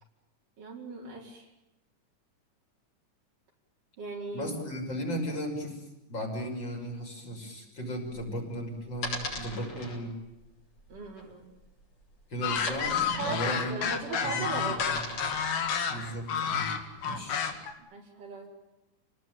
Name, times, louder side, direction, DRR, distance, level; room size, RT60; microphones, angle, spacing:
voice 1, 0.6-1.5 4.0-4.5 7.6-7.7 10.9-11.5 13.2-14.9 17.8-18.5, right 3 dB, 85° right, -4 dB, 6.5 m, -38 dB
voice 2, 4.3-5.8 6.1-10.1 12.3-13.8 14.2-15.0 15.9-16.7 17.0-17.4, equal, 35° left, 1 dB, 6.9 m, -36 dB
sound 1, 8.0-15.7, left 2 dB, 55° left, 6.7 m, -39 dB
sound 2, 12.4-17.7, left 7 dB, 90° left, 3.9 m, -30 dB
30.0 x 20.0 x 9.3 m, 0.96 s
omnidirectional pair, 3.7 m